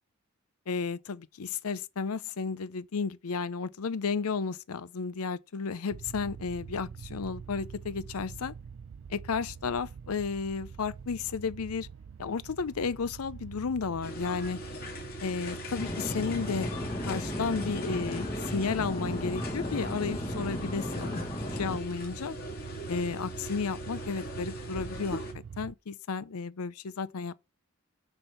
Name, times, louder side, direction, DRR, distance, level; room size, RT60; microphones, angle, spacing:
voice 1, 0.7-8.5 9.1-11.9 12.2-14.6 15.2-16.7 17.0-21.2 21.5-22.3 22.9-25.2 25.6-27.3, left 5 dB, 85° left, 0.6 m, -33 dB
sound 1, 5.9-25.7, right 6 dB, 65° right, 0.3 m, -45 dB
sound 2, 14.0-25.3, left 1 dB, 45° left, 2.3 m, -41 dB
sound 3, 15.7-21.8, left 1 dB, 20° left, 1.0 m, -35 dB
6.7 x 4.5 x 6.7 m
head